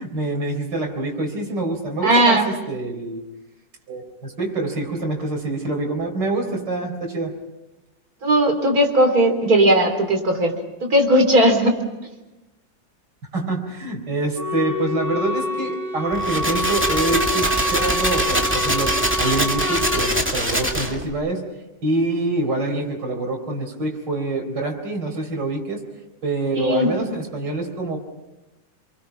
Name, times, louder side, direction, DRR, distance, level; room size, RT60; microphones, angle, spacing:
voice 1, 0.0-3.2 3.9-7.3 13.3-21.4 21.8-25.8 26.2-28.0, right 2 dB, 70° right, 2 dB, 4.7 m, -26 dB
voice 2, 2.0-2.5 8.2-10.5 10.8-11.8 26.5-26.9, right 1 dB, 50° right, 4 dB, 3.9 m, -17 dB
Wind instrument woodwind instrument, 14.3-20.1, left 1 dB, 10° left, 5.8 m, -26 dB
sound 1, 16.1-21.1, right 1 dB, 5° right, 2.1 m, -23 dB
29.0 x 23.5 x 6.0 m, 1.0 s
omnidirectional pair, 2.0 m